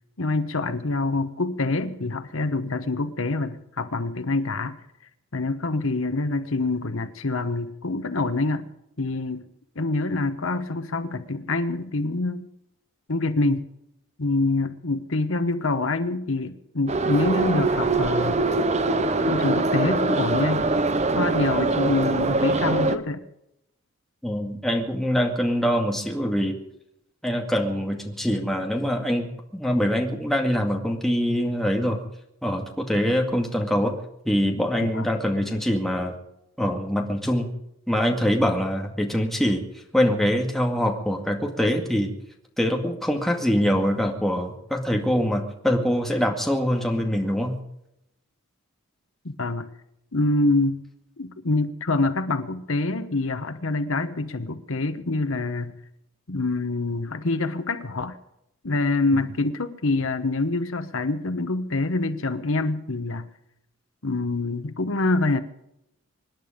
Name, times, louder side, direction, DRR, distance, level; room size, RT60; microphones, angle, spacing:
voice 1, 0.2-4.8 5.3-8.6 9.0-9.5 9.7-12.5 13.1-13.7 14.2-18.4 19.3-20.7 21.1-23.2 34.8-35.1 49.2-49.7 50.1-50.8 51.2-55.8 56.3-58.2 58.6-63.3 64.0-65.4, left 2 dB, 70° left, 11 dB, 1.1 m, -26 dB
Subway metro underground, 16.9-23.0, right 3 dB, 30° right, 0.8 m, -23 dB
voice 2, 24.2-26.6 27.2-32.0 32.4-34.0 34.3-36.1 36.6-37.5 37.9-39.6 39.9-42.1 42.6-47.6, equal, ahead, 1 dB, 2.1 m, -24 dB
25.5 x 10.5 x 5.2 m, 0.81 s
head